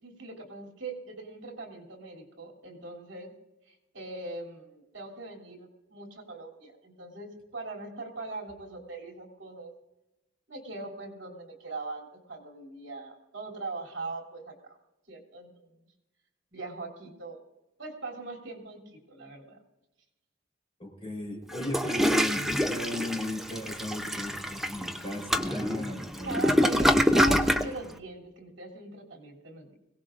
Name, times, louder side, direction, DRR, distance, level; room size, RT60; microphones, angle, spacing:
voice 1, 0.0-3.3 3.7-9.7 10.5-14.8 15.1-15.7 16.5-17.4 17.8-19.6 26.2-29.8, right 3 dB, 65° right, 1 dB, 3.0 m, -41 dB
voice 2, 20.8-26.7, left 1 dB, 30° left, 0 dB, 4.0 m, -36 dB
Toilet flush, 21.5-27.7, equal, ahead, 0.6 m, -26 dB
21.5 x 17.5 x 2.5 m, 0.98 s
head